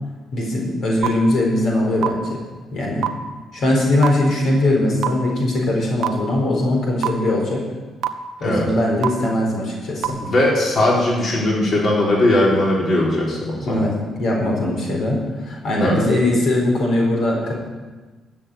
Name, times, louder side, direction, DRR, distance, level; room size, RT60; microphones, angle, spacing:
voice 1, 0.3-2.4 2.7-3.1 3.5-7.6 8.4-10.2 13.7-17.5, left 1 dB, 65° left, -1 dB, 4.4 m, -20 dB
sound 1, 1.0-1.1 2.0-2.1 3.0-3.1 4.0-4.1 5.0-5.1 6.0-6.1 7.0-7.1 8.0-8.1 9.0-9.1 10.0-10.1, right 12 dB, 80° right, 0.9 m, -19 dB
voice 2, 10.2-13.8 15.8-16.0, left 1 dB, 50° left, -4 dB, 4.3 m, -19 dB
14.0 x 7.5 x 9.4 m, 1.3 s
cardioid pair, 90°, 0 cm